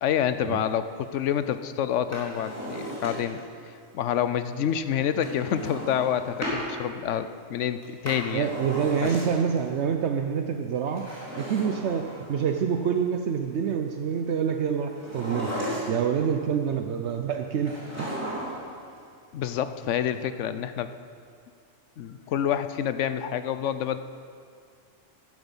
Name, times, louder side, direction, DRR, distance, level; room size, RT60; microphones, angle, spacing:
voice 1, 0.0-3.4 3.9-8.5 9.0-9.1 19.3-20.9 22.0-24.0, left 9 dB, 80° left, 11 dB, 1.0 m, -28 dB
Drawer open or close, 2.0-3.5 5.2-6.6 7.8-9.6 10.8-12.5 14.9-16.2 17.6-18.7 19.0-19.1, equal, 10° right, 3.6 m, -35 dB
voice 2, 8.3-11.1 11.4-15.5 15.9-18.1, right 7 dB, 70° right, 5 dB, 0.9 m, -27 dB
14.5 x 11.0 x 5.4 m, 2.2 s
omnidirectional pair, 1.3 m